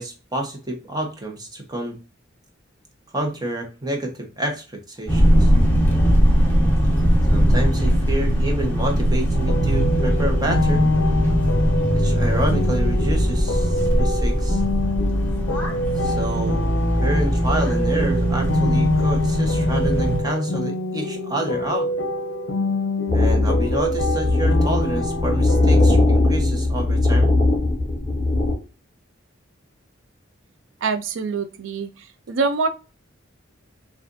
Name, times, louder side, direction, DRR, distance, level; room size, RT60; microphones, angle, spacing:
voice 1, 0.0-2.0 3.1-5.5 7.3-10.9 11.9-14.6 16.0-16.7 17.0-21.9 23.1-27.3, right 1 dB, 20° right, 2 dB, 1.1 m, -28 dB
sound 1, 5.1-20.2, equal, 10° left, 1.3 m, -20 dB
sound 2, 9.3-26.0, left 2 dB, 75° left, 0.6 m, -26 dB
sound 3, 23.1-28.5, left 2 dB, 40° left, 1.9 m, -19 dB
voice 2, 30.8-31.9 32.3-32.7, right 4 dB, 85° right, 10 dB, 0.5 m, -24 dB
6.3 x 2.6 x 2.6 m, 0.32 s
head